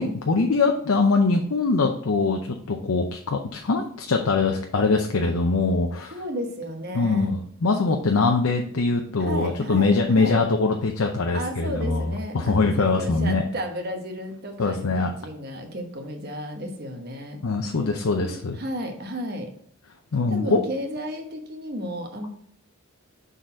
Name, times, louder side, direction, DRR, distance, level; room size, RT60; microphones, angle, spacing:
voice 1, 0.0-6.1 6.9-12.1 12.3-13.4 14.6-15.1 17.4-18.6 20.1-20.6, left 3 dB, 85° left, 3 dB, 0.6 m, -23 dB
voice 2, 6.1-7.4 9.2-10.4 11.3-17.4 18.2-19.5 20.3-22.3, equal, 45° right, 4 dB, 1.1 m, -33 dB
6.4 x 4.0 x 4.5 m, 0.63 s
head